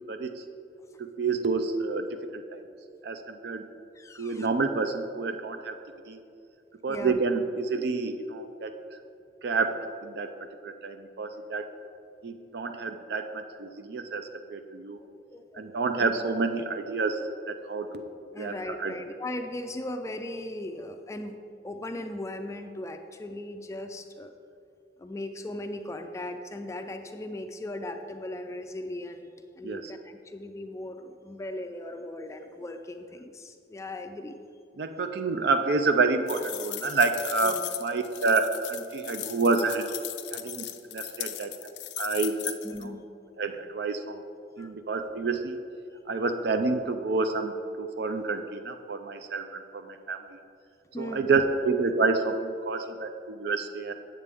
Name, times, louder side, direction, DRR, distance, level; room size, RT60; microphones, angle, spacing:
voice 1, 1.0-2.1 2.3-2.6 3.0-3.6 4.2-5.7 6.1-6.2 6.8-8.7 9.4-10.3 10.6-11.7 12.2-15.0 15.6-17.2 17.5-18.0 18.4-18.9 29.6-29.9 34.8-39.9 40.3-40.7 40.9-41.5 42.0-42.5 42.8-42.9 43.4-44.2 44.6-45.6 46.1-50.2 51.0-53.9, right 4 dB, 65° right, 8 dB, 0.5 m, -28 dB
voice 2, 4.0-4.5 6.9-7.2 7.7-7.8 15.3-15.7 15.9-16.1 18.3-21.4 21.6-24.3 25.0-29.3 29.6-34.4 37.4-37.6 42.6-43.0 44.6-44.7 50.9-51.3, left 1 dB, 15° left, 6 dB, 0.3 m, -38 dB
sound 1, 36.3-42.8, left 13 dB, 90° left, 0.5 m, -37 dB
8.3 x 7.4 x 3.5 m, 2.5 s
head